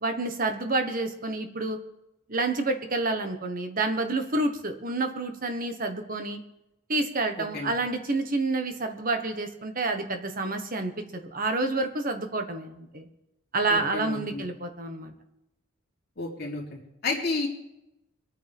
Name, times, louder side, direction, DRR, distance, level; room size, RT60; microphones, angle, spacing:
voice 1, 0.0-1.8 2.3-6.4 6.9-13.1 13.5-15.1, right 2 dB, 45° right, 6 dB, 1.3 m, -29 dB
voice 2, 7.4-7.7 13.7-14.4 16.2-17.5, left 3 dB, 50° left, -2 dB, 3.3 m, -32 dB
25.0 x 9.1 x 3.6 m, 0.90 s
head